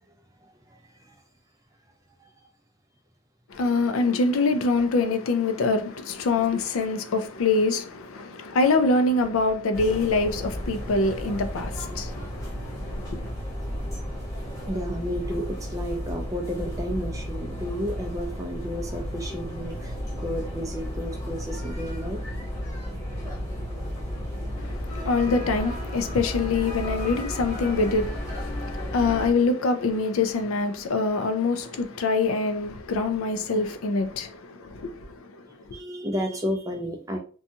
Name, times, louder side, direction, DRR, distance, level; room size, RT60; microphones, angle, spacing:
voice 1, 0.4-1.2 2.2-2.3 14.7-22.2 35.7-37.2, equal, 15° right, 0.3 m, -32 dB
voice 2, 3.5-13.3 24.6-35.3 35.7-35.8, left 3 dB, 80° left, 0.4 m, -25 dB
sound 1, 9.7-29.3, equal, 15° left, 1.0 m, -33 dB
2.6 x 2.3 x 2.7 m
head